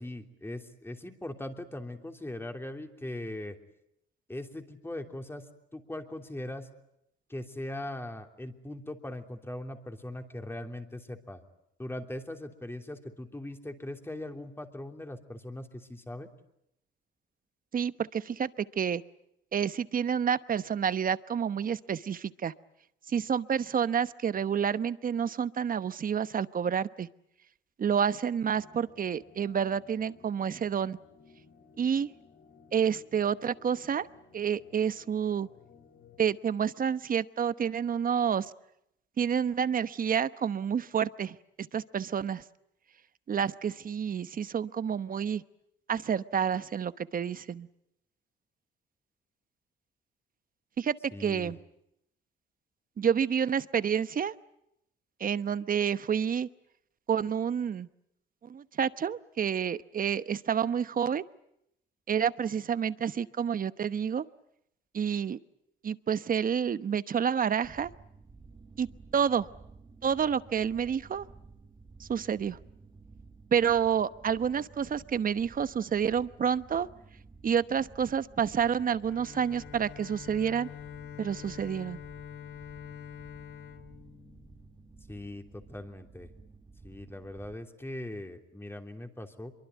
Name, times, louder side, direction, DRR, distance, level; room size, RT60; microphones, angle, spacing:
voice 1, 0.0-3.6 4.3-5.5 5.7-6.7 7.3-11.4 11.8-16.3 51.1-51.5 85.1-86.3 86.8-89.5, left 1 dB, 10° left, 5 dB, 3.1 m, -40 dB
voice 2, 17.7-18.5 18.8-19.0 19.5-22.5 23.1-27.1 27.8-31.0 31.8-32.1 32.7-34.1 34.3-35.5 36.2-38.5 39.2-41.4 41.7-42.4 43.3-45.4 45.9-47.7 50.8-50.9 51.2-51.6 53.0-54.3 55.2-56.5 57.1-57.9 58.4-61.2 62.1-64.2 64.9-65.4 65.8-67.9 68.8-68.9 69.1-69.5 70.0-71.3 72.0-72.6 73.5-76.9 77.4-80.7 81.2-82.0, right 7 dB, 45° right, 14 dB, 1.0 m, -29 dB
sound 1, 28.5-36.2, left 5 dB, 60° left, 4.0 m, -58 dB
sound 2, 67.6-87.6, right 4 dB, 20° right, 2.0 m, -53 dB
Bowed string instrument, 79.0-85.0, left 10 dB, 90° left, 2.9 m, -46 dB
25.0 x 23.5 x 9.3 m, 0.79 s
cardioid pair, 90°, 20 cm